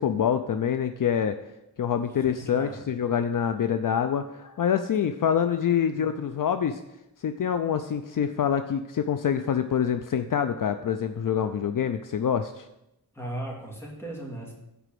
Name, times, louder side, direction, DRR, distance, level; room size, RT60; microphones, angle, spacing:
voice 1, 0.0-1.4 1.8-6.8 7.2-12.7, left 8 dB, 60° left, 9 dB, 0.5 m, -26 dB
voice 2, 2.2-2.8 5.9-6.1 13.1-14.5, right 1 dB, 5° left, -3 dB, 2.9 m, -37 dB
8.1 x 5.0 x 7.5 m, 0.89 s
wide cardioid pair, 100°, 37 cm